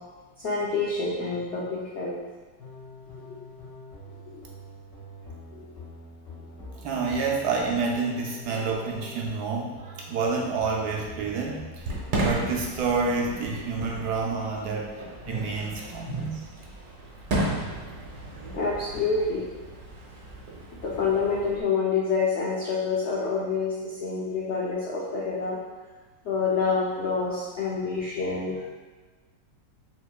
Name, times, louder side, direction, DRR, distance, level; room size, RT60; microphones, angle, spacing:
voice 1, 0.4-2.2 3.2-3.3 4.3-4.4 5.5-5.6 15.3-15.7 16.1-16.3 18.5-19.4 20.8-25.6 26.2-28.7, left 4 dB, 85° left, -5 dB, 0.6 m, -27 dB
sound 1, 2.6-13.2, left 1 dB, 55° left, 1.9 m, -45 dB
voice 2, 6.8-11.7 12.2-16.4, right 4 dB, 70° right, -1 dB, 1.0 m, -28 dB
Fireworks, 11.7-21.6, right 1 dB, 90° right, 1.6 m, -34 dB
5.9 x 2.9 x 2.3 m, 1.3 s
omnidirectional pair, 2.0 m